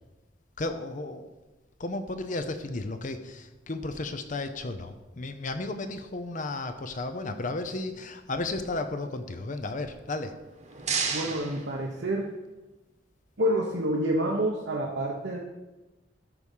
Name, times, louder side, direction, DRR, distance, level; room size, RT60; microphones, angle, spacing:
voice 1, 0.6-1.3 1.8-10.3, left 2 dB, 40° left, 9 dB, 0.7 m, -34 dB
sound 1, 10.3-12.5, right 5 dB, 40° right, 1.2 m, -34 dB
voice 2, 11.1-12.3 13.4-15.4, right 1 dB, 65° right, -1 dB, 0.9 m, -28 dB
13.0 x 4.8 x 5.5 m, 1.1 s
head